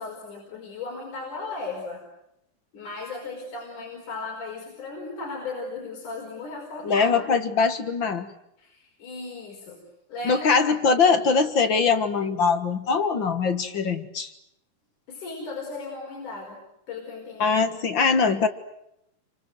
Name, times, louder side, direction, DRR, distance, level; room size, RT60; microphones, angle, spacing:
voice 1, 0.0-2.0 2.7-7.1 8.6-9.8 10.1-10.5 10.9-11.1 15.1-16.6 16.9-17.6 17.9-18.0, left 3 dB, 70° left, 0 dB, 6.5 m, -36 dB
voice 2, 6.8-8.3 10.2-14.3 17.4-18.5, left 5 dB, 45° left, 9 dB, 1.8 m, -22 dB
29.0 x 25.0 x 7.9 m, 0.80 s
omnidirectional pair, 3.7 m